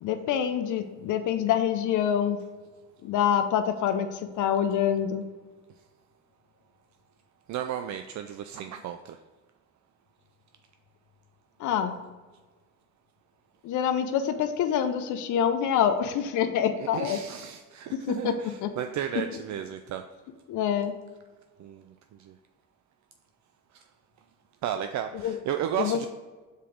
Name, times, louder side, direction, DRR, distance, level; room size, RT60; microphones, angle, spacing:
voice 1, 0.0-2.4 3.0-5.2 11.6-11.9 13.6-17.2 17.9-18.7 20.5-20.9 25.2-25.4 25.8-26.0, left 9 dB, 80° left, 8 dB, 0.6 m, -26 dB
voice 2, 7.5-9.2 16.8-20.0 21.6-21.8 22.2-22.3 24.6-26.1, right 9 dB, 65° right, 7 dB, 0.5 m, -33 dB
5.1 x 4.5 x 4.9 m, 1.3 s
cardioid pair, 90°, 30 cm